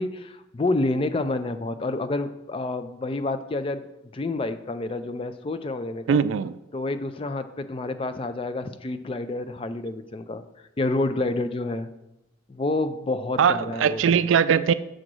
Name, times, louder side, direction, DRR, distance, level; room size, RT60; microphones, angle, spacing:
voice 1, 0.0-3.9 4.1-6.2 6.7-10.4 10.8-11.9 12.5-14.2, left 2 dB, 30° left, 10 dB, 0.4 m, -28 dB
voice 2, 6.1-6.6 13.4-14.7, right 7 dB, 80° right, 15 dB, 0.3 m, -20 dB
6.3 x 3.8 x 6.1 m, 0.89 s
head